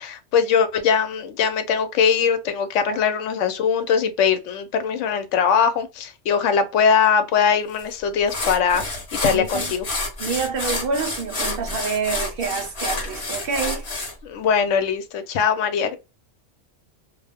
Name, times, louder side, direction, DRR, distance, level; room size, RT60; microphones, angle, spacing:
voice 1, 0.0-9.8 14.2-16.0, left 6 dB, 85° left, 0.9 m, -21 dB
sound 1, 7.8-7.9 8.3-14.1, left 2 dB, 30° left, 0.8 m, -29 dB
voice 2, 9.3-9.7 10.2-13.9, right 5 dB, 60° right, 0.7 m, -27 dB
2.3 x 2.0 x 3.3 m
omnidirectional pair, 1.2 m